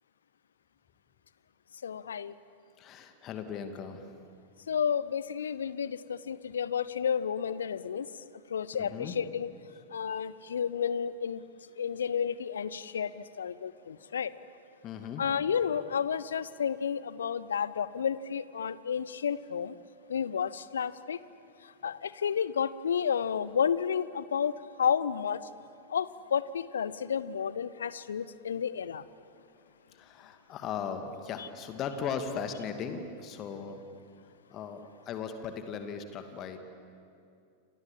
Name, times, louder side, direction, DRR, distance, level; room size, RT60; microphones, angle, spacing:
voice 1, 1.8-2.3 4.7-8.1 8.5-9.5 9.9-11.4 11.8-14.3 15.2-19.7 20.1-21.2 21.8-24.5 24.8-25.5 25.9-29.0, left 7 dB, 65° left, 17 dB, 0.8 m, -31 dB
voice 2, 2.8-4.1 8.7-9.2 10.1-10.2 14.0-14.1 14.8-15.3 29.9-33.8 34.5-36.6, left 6 dB, 35° left, 7 dB, 2.4 m, -38 dB
28.5 x 27.5 x 7.5 m, 2.5 s
figure-of-eight pair, 90°, 0 cm